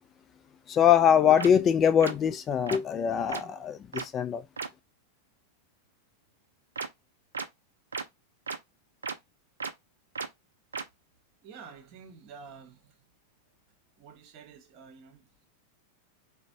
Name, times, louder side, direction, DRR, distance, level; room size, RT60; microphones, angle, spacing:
voice 1, 0.7-4.4, left 8 dB, 25° left, 0.4 m, -23 dB
sound 1, 0.8-0.9 1.4-1.5 2.0-2.1 2.7-2.8 3.3-3.4 3.9-4.0 4.6-4.7 6.7-6.9 7.3-7.4 7.9-8.0 8.5-8.6 9.0-9.1 9.6-9.7 10.1-10.3 10.7-10.8, right 5 dB, 75° right, 0.4 m, -34 dB
voice 2, 11.4-12.9 14.0-15.5, right 5 dB, 40° right, 0.8 m, -49 dB
4.1 x 2.1 x 2.6 m
figure-of-eight pair, 90°, 0 cm